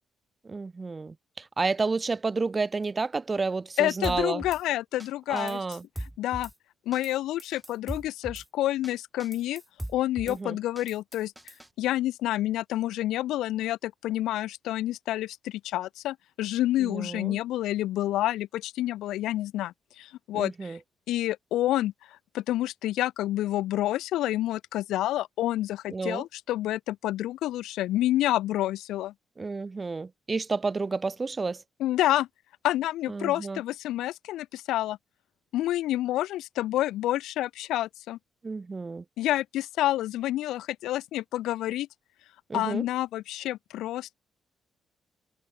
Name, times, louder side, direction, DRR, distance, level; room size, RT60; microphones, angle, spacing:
voice 1, 0.4-4.4 5.3-5.8 10.3-10.6 16.8-17.4 20.3-20.8 25.9-26.2 29.4-31.6 33.1-33.6 38.4-39.0 42.5-42.8, right 4 dB, 30° right, 0.6 m, -30 dB
voice 2, 3.8-5.6 6.2-6.5 6.9-9.6 9.9-11.3 11.8-20.8 21.1-21.9 22.3-29.1 31.8-32.3 32.6-35.0 35.5-38.2 39.2-41.9 42.5-44.1, left 14 dB, 85° left, 0.6 m, -28 dB
Drum kit / Snare drum, 4.0-4.6 5.0-5.1 5.4-6.5 6.9-7.1 7.4-8.5 8.8-8.9 9.2-10.4 10.8-11.7, right 1 dB, 5° right, 2.3 m, -39 dB
cardioid pair, 90°, 0 cm